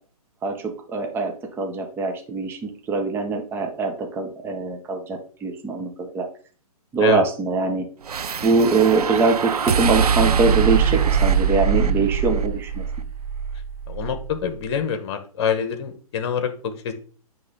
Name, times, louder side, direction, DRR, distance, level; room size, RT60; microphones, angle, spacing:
voice 1, 0.4-6.2 6.9-7.9 8.4-12.8, right 4 dB, 10° right, 3 dB, 0.8 m, -23 dB
sound 1, 8.1-14.4, right 7 dB, 80° right, 0.6 m, -22 dB
voice 2, 13.9-16.9, left 7 dB, 45° left, 9 dB, 1.2 m, -26 dB
9.2 x 3.2 x 3.8 m, 0.42 s
hypercardioid pair, 130°, 20 cm